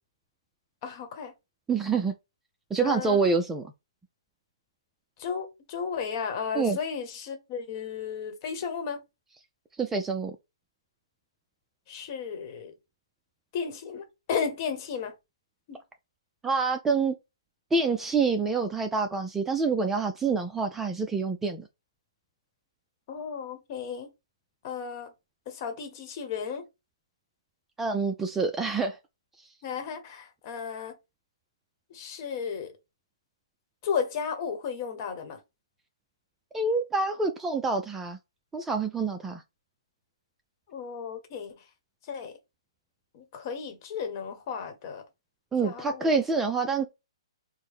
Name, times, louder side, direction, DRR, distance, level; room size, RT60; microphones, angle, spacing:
voice 1, 0.8-1.3 2.8-3.2 5.2-9.0 11.9-12.7 13.5-15.1 15.7-15.8 23.1-24.1 24.6-25.1 25.5-26.6 29.6-31.0 31.9-32.7 33.8-35.4 40.7-41.6 42.1-42.3 43.1-45.0 45.6-46.1, left 6 dB, 40° left, 1.0 m, -34 dB
voice 2, 1.7-2.1 2.7-3.7 6.5-6.8 9.8-10.3 16.4-17.1 17.7-21.6 27.8-29.0 36.5-38.2 38.5-39.4 45.5-46.9, right 4 dB, 10° right, 0.3 m, -27 dB
4.5 x 2.0 x 3.4 m
hypercardioid pair, 140°, 3 cm